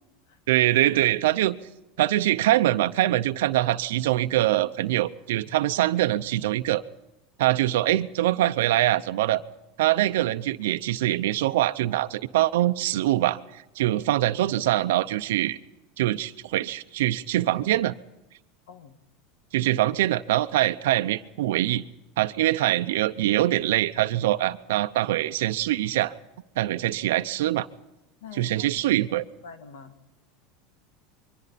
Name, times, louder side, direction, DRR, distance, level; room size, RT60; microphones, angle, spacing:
voice 1, 0.5-1.6 2.0-6.8 7.4-9.4 9.8-15.6 16.0-17.9 19.5-21.8 22.2-26.1 26.6-27.7 28.3-29.2, right 14 dB, 85° right, 10 dB, 0.7 m, -23 dB
voice 2, 18.7-19.0 28.2-29.0 29.4-30.1, left 6 dB, 75° left, 8 dB, 2.0 m, -46 dB
28.0 x 23.0 x 4.2 m, 0.97 s
supercardioid pair, 150°, 0 cm